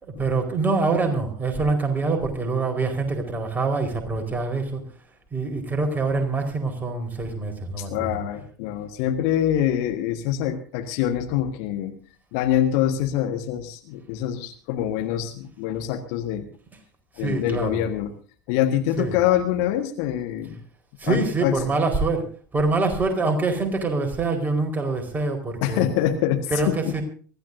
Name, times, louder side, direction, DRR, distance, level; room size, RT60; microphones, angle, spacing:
voice 1, 0.0-5.0 5.3-8.2 17.1-17.8 19.0-19.2 21.0-25.9 26.5-27.0, right 3 dB, 15° right, 3 dB, 4.5 m, -25 dB
voice 2, 7.8-11.9 12.3-16.5 17.2-18.1 18.5-20.6 21.0-21.5 25.6-26.4 26.7-26.9, left 11 dB, 55° left, 7 dB, 1.6 m, -25 dB
24.0 x 15.0 x 2.7 m, 0.41 s
figure-of-eight pair, 75°, 10 cm